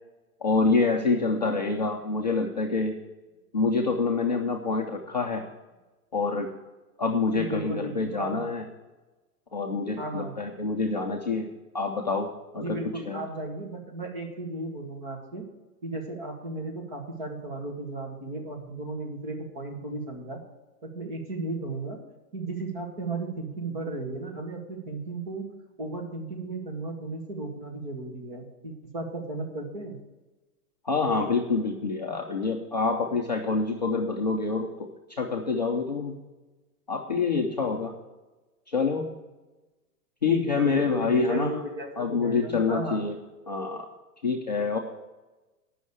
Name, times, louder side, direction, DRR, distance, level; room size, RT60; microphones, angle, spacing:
voice 1, 0.4-3.0 3.5-5.5 6.1-6.5 7.0-8.7 9.5-11.5 11.7-12.3 12.5-12.8 13.1-13.2 30.8-36.1 36.9-37.9 38.7-39.1 40.2-41.6 42.0-43.2 43.5-43.9 44.2-44.8, left 4 dB, 30° left, -1 dB, 0.5 m, -26 dB
voice 2, 7.3-8.4 10.0-10.3 12.5-15.4 15.8-20.4 20.8-22.0 22.3-25.5 25.8-30.0 40.3-43.1, right 2 dB, 30° right, 1 dB, 1.8 m, -35 dB
9.2 x 6.3 x 8.3 m, 1.1 s
hypercardioid pair, 180°, 45 cm